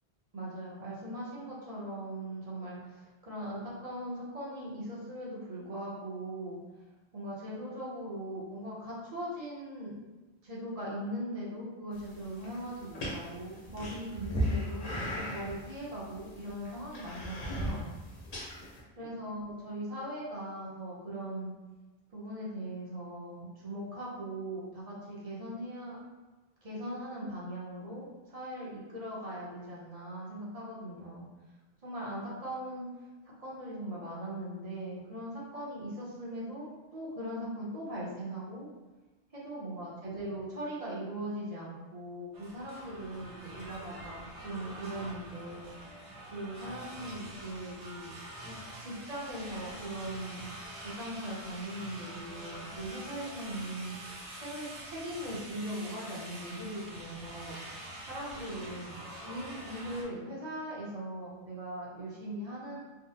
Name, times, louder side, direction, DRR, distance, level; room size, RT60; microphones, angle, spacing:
voice 1, 0.3-6.6 7.1-9.9 10.4-17.9 19.0-21.5 22.1-26.0 26.6-31.3 31.8-32.9 33.4-38.7 39.3-46.0 46.3-48.1 48.4-50.5 50.8-53.9 54.3-57.6 58.1-62.8, right 1 dB, 40° right, -6 dB, 0.7 m, -40 dB
sound 1, 11.9-18.8, equal, 45° left, 0.7 m, -37 dB
sound 2, 42.3-60.0, right 1 dB, 80° right, 1.1 m, -46 dB
3.6 x 2.0 x 2.7 m, 1.2 s
omnidirectional pair, 1.1 m